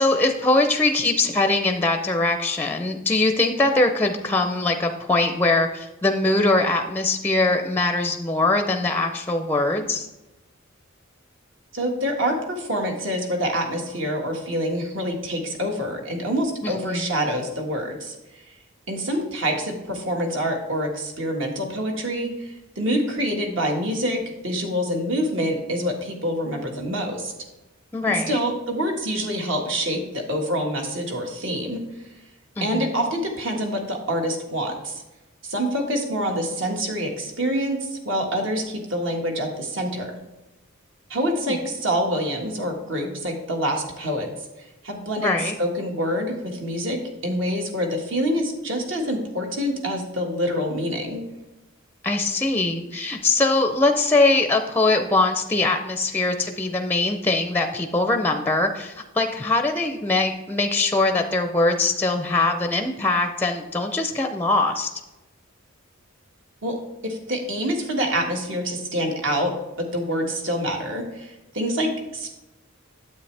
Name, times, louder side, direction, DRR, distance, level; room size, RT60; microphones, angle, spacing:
voice 1, 0.0-10.1 16.6-17.1 27.9-28.4 32.6-32.9 41.4-41.6 45.2-45.5 52.0-64.9, left 2 dB, 10° left, 6 dB, 0.5 m, -22 dB
voice 2, 11.7-18.1 18.9-27.3 28.1-31.8 32.6-35.0 35.4-40.2 41.1-44.3 44.8-51.2 66.6-72.3, equal, 65° right, 1 dB, 1.7 m, -26 dB
9.5 x 7.9 x 3.3 m, 1.0 s
head